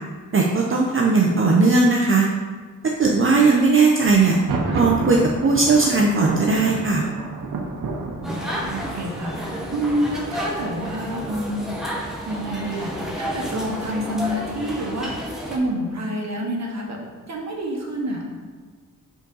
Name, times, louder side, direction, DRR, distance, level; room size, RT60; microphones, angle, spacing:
voice 1, 0.3-2.3 3.0-4.4 4.7-7.0, right 3 dB, 40° right, -1 dB, 0.6 m, -18 dB
Thunder, 4.2-12.0, right 3 dB, 90° right, 0.8 m, -31 dB
voice 2, 8.1-17.0 17.3-18.3, right 1 dB, 55° right, 0 dB, 1.1 m, -28 dB
sound 1, 8.2-15.6, equal, ahead, 1.0 m, -31 dB
5.0 x 3.9 x 5.3 m, 1.5 s
wide cardioid pair, 120°, 32 cm